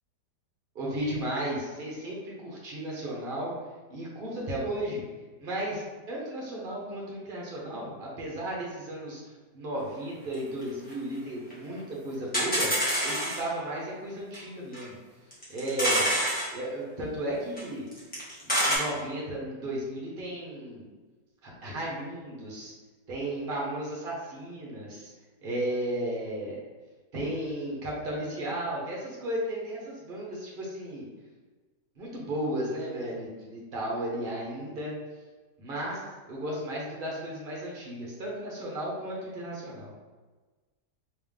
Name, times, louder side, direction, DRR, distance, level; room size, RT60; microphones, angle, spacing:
voice 1, 0.7-3.5 3.9-5.0 5.4-9.2 9.5-12.7 13.0-14.9 15.5-16.1 16.5-17.9 18.4-20.9 21.4-22.7 23.1-25.1 25.4-26.6 27.1-31.1 32.0-35.0 35.6-36.0 36.3-39.9, right 1 dB, 40° right, -3 dB, 0.9 m, -34 dB
sound 1, 10.3-10.4 10.6-10.7 10.9-11.0 11.5-11.6 11.8-11.9 12.3-13.5 14.3-14.4 14.7-14.8 15.3-16.5 17.6-17.7 17.9-18.8, equal, 5° left, 0.9 m, -26 dB
3.4 x 3.1 x 3.5 m, 1.3 s
omnidirectional pair, 1.9 m